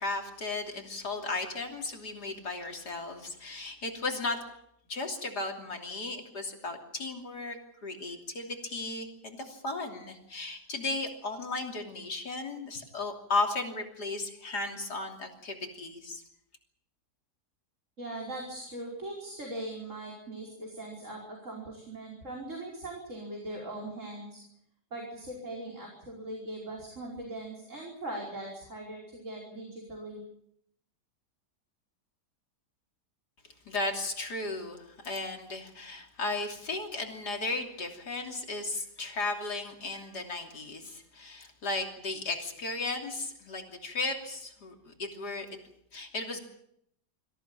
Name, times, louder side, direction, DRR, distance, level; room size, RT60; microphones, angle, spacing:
voice 1, 0.0-4.4 4.9-16.2 33.7-45.5 45.9-46.4, left 3 dB, 70° left, 2 dB, 3.6 m, -35 dB
voice 2, 18.0-24.4 24.9-30.2, right 1 dB, 45° right, -2 dB, 5.4 m, -40 dB
25.5 x 15.0 x 8.9 m, 0.74 s
omnidirectional pair, 1.8 m